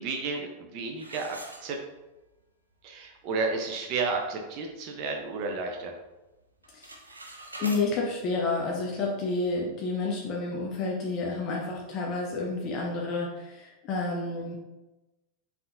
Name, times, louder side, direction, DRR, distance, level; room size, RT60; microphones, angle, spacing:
voice 1, 0.0-1.8 2.8-5.9, right 4 dB, 40° right, 2 dB, 0.6 m, -32 dB
sound 1, 1.0-2.2 2.7-2.8 3.4-3.5 3.8-4.1 4.6-5.7 6.0-6.3 6.6-7.9, right 2 dB, 80° right, 0.6 m, -44 dB
voice 2, 7.6-14.6, left 3 dB, 35° left, -2 dB, 0.8 m, -30 dB
5.7 x 3.6 x 2.5 m, 1.1 s
figure-of-eight pair, 90°, 0 cm